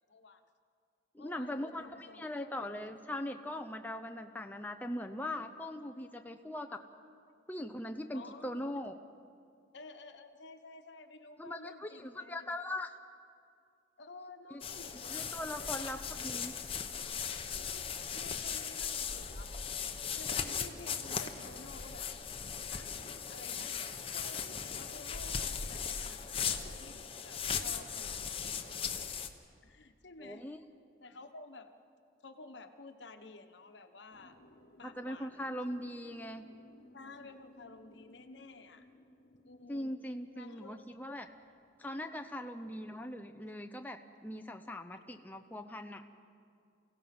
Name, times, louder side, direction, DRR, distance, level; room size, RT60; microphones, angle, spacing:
voice 1, 0.1-0.4 1.2-2.8 8.1-8.9 9.7-12.5 14.0-16.0 17.6-19.5 20.1-22.1 22.7-22.9 23.3-23.8 24.1-28.9 29.6-30.5 31.0-31.7 32.2-34.4 34.8-35.5 36.9-38.9 39.5-39.9 40.3-41.0 44.9-45.0, left 3 dB, 75° left, 7 dB, 1.2 m, -52 dB
voice 2, 1.1-6.8 7.5-9.0 11.4-12.9 14.5-14.6 15.1-16.5 30.2-30.6 34.8-36.5 39.7-41.3 41.8-46.2, left 1 dB, 10° left, 5 dB, 0.6 m, -40 dB
sound 1, 14.6-29.3, left 7 dB, 30° left, 0.9 m, -38 dB
sound 2, 34.1-43.5, left 1 dB, 55° left, 1.3 m, -61 dB
28.5 x 16.5 x 6.0 m, 2.3 s
head